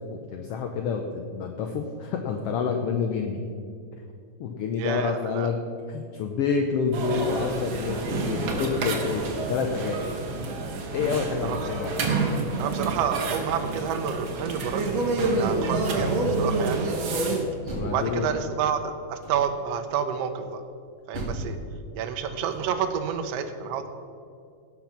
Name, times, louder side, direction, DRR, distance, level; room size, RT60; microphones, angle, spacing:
voice 1, 0.1-3.4 4.4-5.6 5.9-10.0 10.9-11.9 17.7-18.3, left 6 dB, 75° left, 4 dB, 1.5 m, -28 dB
voice 2, 4.8-5.5 11.4-11.8 12.6-16.9 17.8-20.6 21.1-21.6 21.9-23.9, right 7 dB, 70° right, 7 dB, 1.7 m, -29 dB
sound 1, 6.9-17.4, right 3 dB, 50° right, 1.8 m, -28 dB
Door, 17.6-18.6 19.2-19.8 21.1-23.0, right 1 dB, 20° right, 2.6 m, -37 dB
17.5 x 6.0 x 5.8 m, 2.4 s
omnidirectional pair, 3.3 m